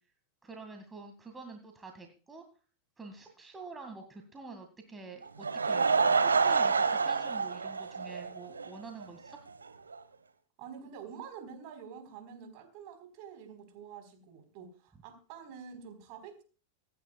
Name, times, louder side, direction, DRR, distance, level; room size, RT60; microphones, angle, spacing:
voice 1, 0.4-2.4 3.0-9.4, right 4 dB, 15° right, 4 dB, 2.1 m, -47 dB
Laughter / Crowd, 5.2-8.7 9.0-9.1 9.7-9.8 9.9-10.0, right 5 dB, 75° right, 1.2 m, -27 dB
voice 2, 10.6-16.4, right 7 dB, 45° right, 7 dB, 4.3 m, -47 dB
25.5 x 10.5 x 2.4 m, 0.37 s
figure-of-eight pair, 90°, 0 cm